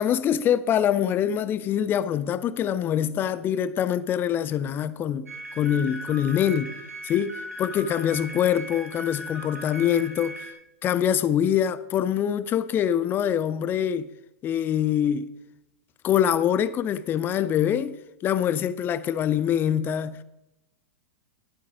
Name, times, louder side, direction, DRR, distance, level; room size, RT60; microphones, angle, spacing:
voice 1, 0.0-5.3 5.6-6.7 7.0-7.3 7.6-10.5 10.8-14.1 14.4-15.3 16.0-17.9 18.2-20.2, left 9 dB, 25° left, 0.5 m, -24 dB
sound 1, 5.3-10.5, equal, 85° right, 2.5 m, -38 dB
11.5 x 8.6 x 5.0 m
figure-of-eight pair, 100°, 8 cm